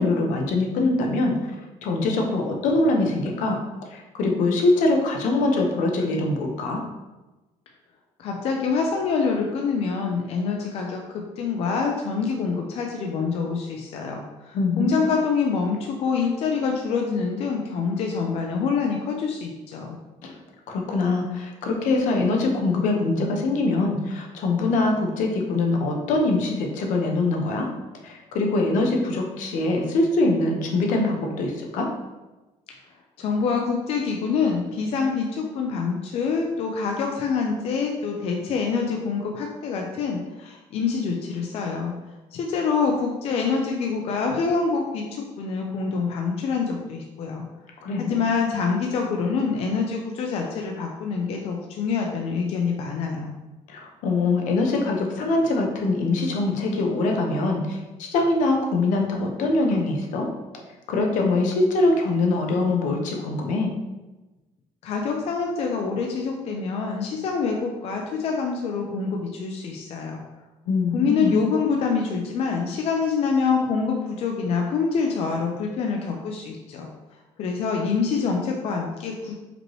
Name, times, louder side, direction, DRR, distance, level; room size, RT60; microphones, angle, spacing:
voice 1, 0.0-1.4 1.8-3.6 3.9-6.8 14.5-15.0 20.2-20.3 20.7-27.7 28.0-31.9 47.8-48.2 53.7-60.3 60.9-63.7 70.7-71.3, left 2 dB, 80° left, 1 dB, 0.8 m, -23 dB
voice 2, 8.2-20.0 33.2-41.9 42.3-47.4 48.0-53.3 64.8-70.2 70.9-76.9 77.4-79.4, left 5 dB, 50° left, 1 dB, 0.5 m, -26 dB
5.0 x 3.1 x 3.1 m, 1.1 s
cardioid pair, 155°, 13 cm